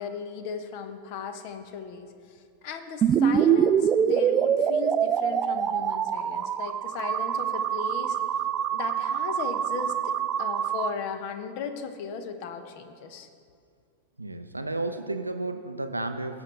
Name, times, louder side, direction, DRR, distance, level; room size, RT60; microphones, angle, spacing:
voice 1, 0.0-8.2 8.7-13.3, left 6 dB, 45° left, 9 dB, 0.8 m, -36 dB
sound 1, 3.0-10.9, right 8 dB, 25° right, 0.3 m, -25 dB
voice 2, 14.2-16.4, right 2 dB, 85° right, 8 dB, 0.5 m, -32 dB
17.0 x 7.2 x 3.2 m, 2.3 s
figure-of-eight pair, 90°, 0 cm